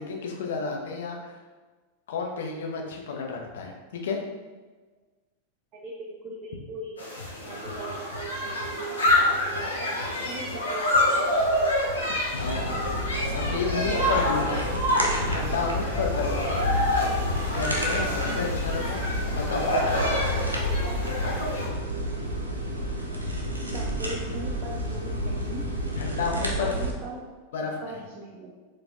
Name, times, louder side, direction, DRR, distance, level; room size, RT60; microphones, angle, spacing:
voice 1, 0.0-1.4 2.1-4.2 12.3-12.8 13.2-14.9 15.3-16.7 17.5-19.0 19.3-20.2 25.9-26.7 27.5-28.0, left 4 dB, 60° left, 1 dB, 0.5 m, -32 dB
voice 2, 5.7-6.9 7.4-11.0 11.5-11.7 23.6-25.6 26.4-27.2 27.8-28.5, right 3 dB, 30° right, -3 dB, 0.6 m, -39 dB
sound 1, 7.0-21.7, left 1 dB, 75° left, 0.9 m, -27 dB
sound 2, 12.4-26.9, equal, 80° right, 0.5 m, -31 dB
4.2 x 2.4 x 2.5 m, 1.3 s
figure-of-eight pair, 90°, 0 cm